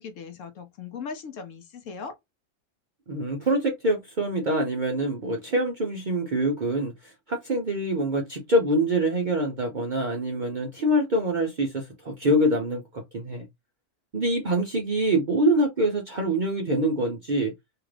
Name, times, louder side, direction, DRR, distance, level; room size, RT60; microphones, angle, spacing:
voice 1, 0.0-2.1, left 5 dB, 65° left, 0.9 m, -38 dB
voice 2, 3.1-13.5 14.1-17.5, right 1 dB, 50° right, 0.5 m, -25 dB
2.9 x 2.4 x 3.2 m
omnidirectional pair, 1.5 m